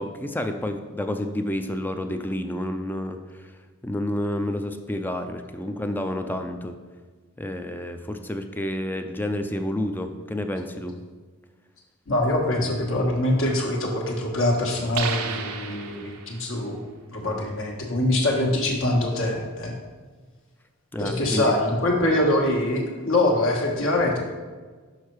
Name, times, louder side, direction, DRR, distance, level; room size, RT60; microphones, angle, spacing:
voice 1, 0.0-3.5 3.8-6.8 7.4-11.0 20.9-21.5, left 1 dB, 10° left, 7 dB, 0.4 m, -29 dB
voice 2, 12.1-16.8 17.1-19.8 21.0-24.2, left 1 dB, 65° left, 0 dB, 1.4 m, -24 dB
sound 1, 14.9-16.5, right 6 dB, 80° right, 0.7 m, -32 dB
6.5 x 5.5 x 4.6 m, 1.4 s
head